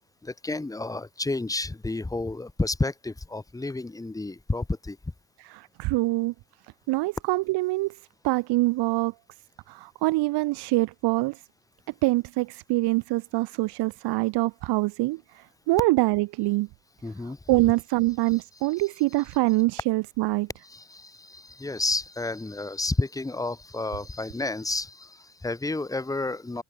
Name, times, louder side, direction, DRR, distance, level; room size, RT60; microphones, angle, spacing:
voice 1, 0.2-5.0 17.0-17.4 18.3-18.4 20.6-26.6, left 2 dB, 10° left, 4.4 m, -31 dB
voice 2, 5.5-6.3 6.9-8.0 8.2-9.1 9.7-11.4 12.0-16.7 17.5-20.5, right 21 dB, 85° right, 5.2 m, -25 dB
cardioid pair, 165°, 39 cm